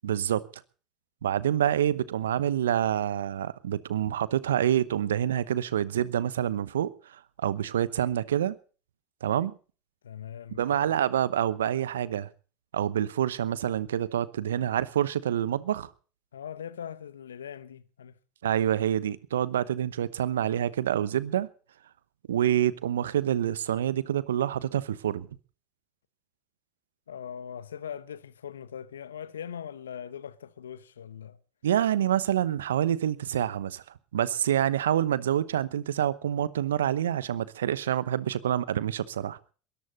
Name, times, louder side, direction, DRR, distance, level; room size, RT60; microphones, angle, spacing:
voice 1, 0.0-0.4 1.2-8.6 9.2-9.5 10.5-12.3 12.7-15.9 18.4-21.5 22.3-25.3 31.6-33.8 34.1-39.4, right 10 dB, 80° right, 0.9 m, -27 dB
voice 2, 10.0-11.0 16.3-18.1 27.1-31.4, left 8 dB, 85° left, 0.9 m, -41 dB
22.0 x 14.0 x 4.0 m
hypercardioid pair, 70°, 0 cm